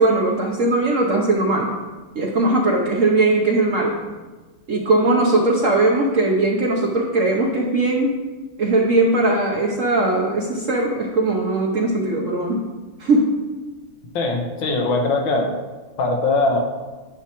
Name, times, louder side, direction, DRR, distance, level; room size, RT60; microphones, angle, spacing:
voice 1, 0.0-1.7 2.1-4.0 4.7-8.1 8.6-12.7 13.0-13.3, right 2 dB, 75° right, -1 dB, 0.7 m, -19 dB
voice 2, 14.1-15.6 16.0-16.6, left 2 dB, 65° left, 2 dB, 1.6 m, -21 dB
10.0 x 5.8 x 3.0 m, 1.3 s
omnidirectional pair, 2.4 m